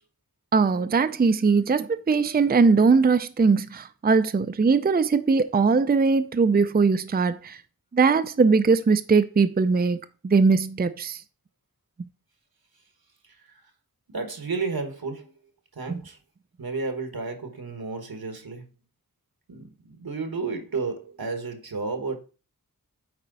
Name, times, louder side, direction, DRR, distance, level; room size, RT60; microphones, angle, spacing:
voice 1, 0.5-7.6 7.9-11.2 15.9-16.0, right 4 dB, 25° right, 0.5 m, -20 dB
voice 2, 14.1-15.3 15.7-16.2 16.6-18.6 19.5-22.2, right 4 dB, 85° right, 1.4 m, -32 dB
8.5 x 4.5 x 3.9 m
wide cardioid pair, 60°, 35 cm